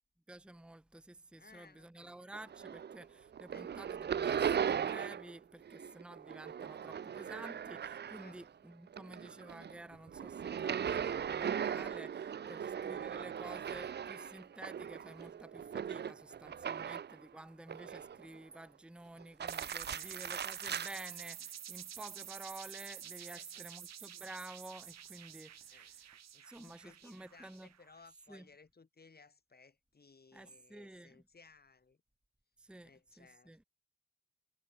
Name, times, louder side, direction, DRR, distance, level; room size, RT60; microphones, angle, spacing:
voice 1, 0.3-26.1 26.4-27.7 28.3-28.5 30.3-31.2 32.6-32.9 33.2-33.6, right 2 dB, 5° right, 0.9 m, -51 dB
voice 2, 1.4-2.3 3.5-3.7 8.2-8.4 12.4-12.7 19.9-20.2 23.3-23.7 25.7-25.9 26.3-32.0 32.8-33.6, left 4 dB, 30° left, 4.6 m, -61 dB
sound 1, 2.3-3.1 3.3-5.4 5.6-8.5 8.9-17.2 17.7-18.4 19.2-20.9, right 8 dB, 35° right, 0.4 m, -38 dB
sound 2, 19.5-28.0, right 10 dB, 60° right, 0.9 m, -49 dB
wide cardioid pair, 155°, 31 cm